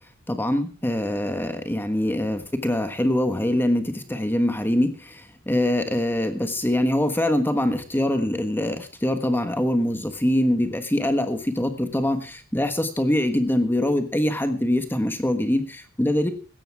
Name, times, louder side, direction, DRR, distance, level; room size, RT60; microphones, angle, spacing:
voice 1, 0.3-5.2 5.5-16.3, left 1 dB, 10° left, 8 dB, 1.4 m, -23 dB
17.0 x 14.5 x 3.6 m, 0.37 s
head